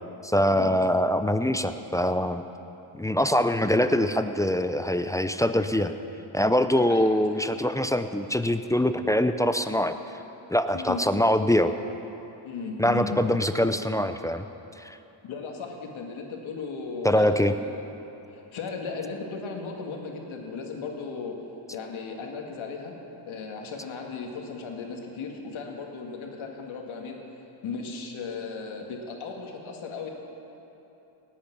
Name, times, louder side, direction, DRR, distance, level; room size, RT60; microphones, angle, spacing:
voice 1, 0.2-2.4 2.9-5.9 6.3-9.9 10.5-11.7 12.8-14.5 14.8-15.0 17.0-17.5, left 1 dB, 5° left, 9 dB, 0.4 m, -23 dB
voice 2, 6.8-7.1 10.7-11.0 12.4-13.4 15.2-17.6 18.3-21.4 21.7-22.9 23.3-27.2 27.6-30.1, left 4 dB, 70° left, 1 dB, 2.1 m, -36 dB
18.5 x 8.8 x 6.0 m, 3.0 s
cardioid pair, 95°, 50 cm